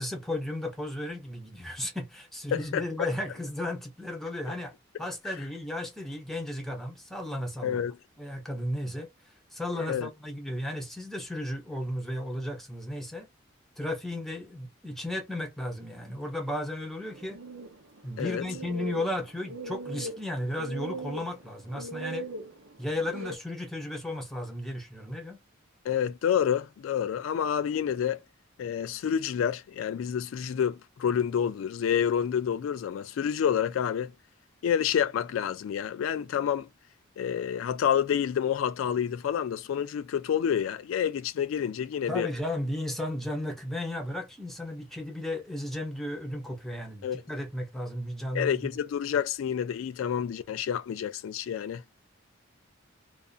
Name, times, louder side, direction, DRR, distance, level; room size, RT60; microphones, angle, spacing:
voice 1, 0.0-4.7 5.0-7.8 8.2-9.1 9.5-13.3 13.8-17.4 18.0-22.3 22.8-25.4 42.1-48.8, left 1 dB, ahead, 0.8 m, -34 dB
voice 2, 2.5-3.1 4.5-4.6 5.3-5.4 7.6-7.9 9.8-10.1 18.2-18.4 25.9-28.2 28.6-34.1 34.6-36.7 37.2-42.3 47.0-47.2 48.3-51.8, left 8 dB, 70° left, 0.3 m, -28 dB
sound 1, 17.0-23.4, right 2 dB, 75° right, 0.7 m, -40 dB
2.4 x 2.4 x 2.4 m
head